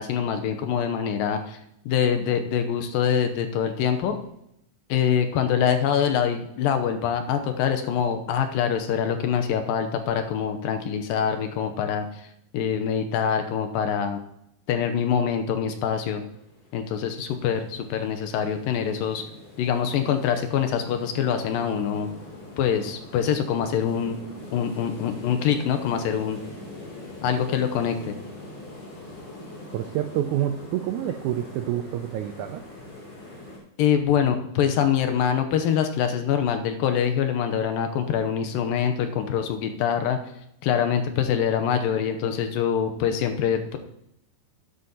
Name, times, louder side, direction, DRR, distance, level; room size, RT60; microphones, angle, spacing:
voice 1, 0.0-1.6 1.9-4.2 4.9-12.3 12.5-14.2 14.7-16.2 16.7-19.2 19.6-22.1 22.6-24.2 24.5-26.4 27.2-28.1 33.8-40.2 40.6-43.8, left 8 dB, 85° left, 6 dB, 2.6 m, -24 dB
sound 1, 16.1-33.6, left 2 dB, 65° left, 5.8 m, -43 dB
voice 2, 29.7-32.6, right 12 dB, 85° right, 7 dB, 1.7 m, -28 dB
12.5 x 10.0 x 2.9 m, 0.79 s
omnidirectional pair, 4.0 m